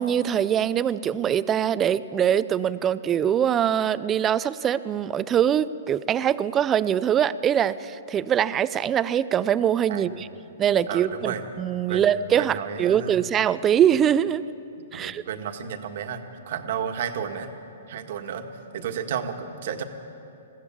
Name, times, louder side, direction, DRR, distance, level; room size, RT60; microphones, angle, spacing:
voice 1, 0.0-10.3 10.6-14.4 14.9-15.2, right 9 dB, 20° right, 16 dB, 0.5 m, -23 dB
voice 2, 9.9-10.3 10.9-11.4 11.9-13.2 14.9-17.5 17.9-18.4 18.7-19.8, right 7 dB, 55° right, 6 dB, 1.6 m, -32 dB
21.5 x 15.0 x 8.6 m, 2.8 s
hypercardioid pair, 145°, 0 cm